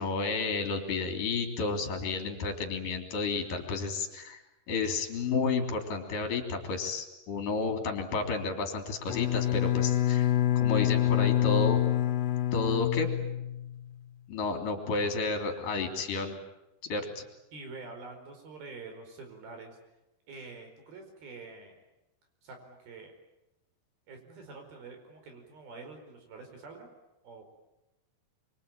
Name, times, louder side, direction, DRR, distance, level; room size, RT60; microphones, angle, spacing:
voice 1, 0.0-4.4 4.7-10.3 10.6-11.8 12.5-13.1 14.3-16.3 16.9-17.2, left 4 dB, 55° left, 4 dB, 4.8 m, -31 dB
Bowed string instrument, 9.1-13.8, left 12 dB, 80° left, 3.4 m, -26 dB
voice 2, 17.5-19.8 20.3-21.7 22.4-23.1 24.1-26.9 27.2-27.6, right 3 dB, 65° right, 5 dB, 6.6 m, -46 dB
25.5 x 25.0 x 8.9 m, 0.94 s
omnidirectional pair, 4.7 m